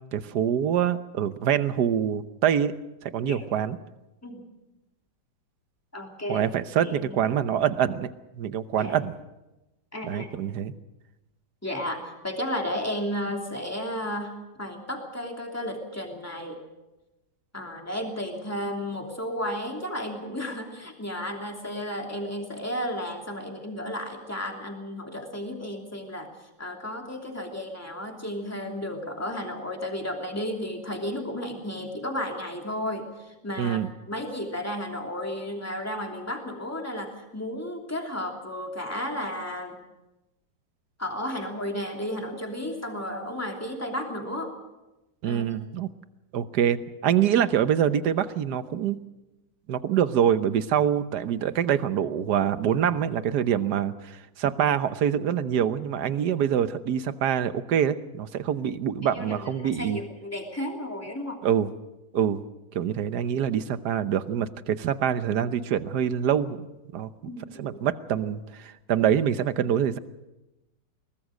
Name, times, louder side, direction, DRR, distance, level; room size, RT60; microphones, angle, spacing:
voice 1, 0.0-2.7 3.0-3.8 6.3-8.1 8.4-9.2 10.0-10.7 33.6-33.9 45.2-45.9 46.3-49.0 49.7-60.0 61.4-61.7 62.1-62.4 62.7-66.7 66.9-67.1 67.6-70.0, right 9 dB, 70° right, 12 dB, 1.5 m, -25 dB
voice 2, 5.9-6.5 6.8-7.2 8.8-9.0 9.9-10.3 11.6-16.6 17.5-26.3 26.6-39.8 41.0-44.5 45.2-45.4 59.0-61.4 67.2-67.8, left 1 dB, 10° left, 2 dB, 2.9 m, -33 dB
22.5 x 19.5 x 6.5 m, 0.99 s
omnidirectional pair, 1.9 m